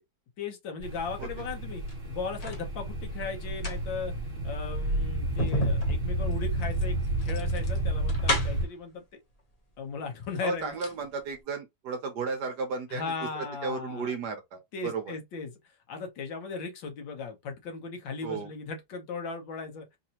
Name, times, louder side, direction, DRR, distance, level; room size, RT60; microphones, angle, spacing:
voice 1, 0.4-4.1 4.4-9.1 9.8-10.8 12.9-14.1 14.7-15.6 15.9-19.9, left 5 dB, 70° left, 1.7 m, -37 dB
sound 1, 0.8-8.6, right 1 dB, 45° right, 0.7 m, -31 dB
sound 2, 1.7-2.7 3.4-8.8 9.7-9.8 10.2-11.0 11.3-11.4, equal, 50° left, 0.4 m, -34 dB
voice 2, 10.4-15.1 18.2-18.5, right 4 dB, 65° right, 1.2 m, -34 dB
4.0 x 2.7 x 2.9 m
omnidirectional pair, 2.2 m